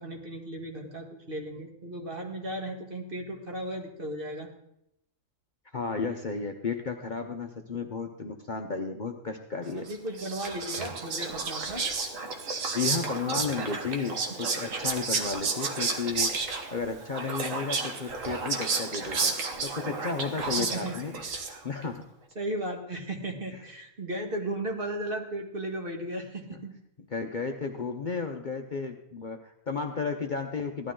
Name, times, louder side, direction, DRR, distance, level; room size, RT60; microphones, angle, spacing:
voice 1, 0.0-4.5 9.8-11.9 20.6-21.0 22.4-26.7, right 1 dB, 40° right, 2 dB, 1.9 m, -35 dB
voice 2, 5.7-9.9 12.7-16.3 16.7-19.4 19.6-21.2 21.6-22.1 26.5-26.6 27.1-30.9, left 5 dB, 40° left, 4 dB, 0.8 m, -33 dB
Whispering, 9.9-21.8, right 4 dB, 70° right, 1.7 m, -32 dB
16.0 x 12.0 x 3.8 m, 0.79 s
omnidirectional pair, 1.4 m